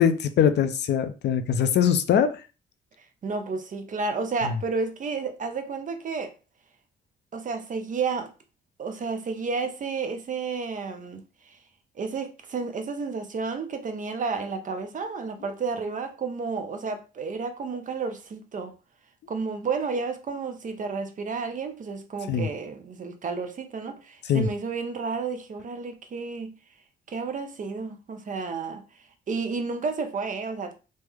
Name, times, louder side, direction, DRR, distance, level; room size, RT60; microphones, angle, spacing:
voice 1, 0.0-2.3 4.4-4.5 22.3-22.5 24.3-24.5, left 8 dB, 60° left, 0.5 m, -22 dB
voice 2, 3.2-6.3 7.3-8.3 8.8-11.6 12.0-18.7 19.3-26.5 27.1-30.8, right 4 dB, 40° right, 0.6 m, -31 dB
3.1 x 2.1 x 3.4 m
cardioid pair, 90°, 20 cm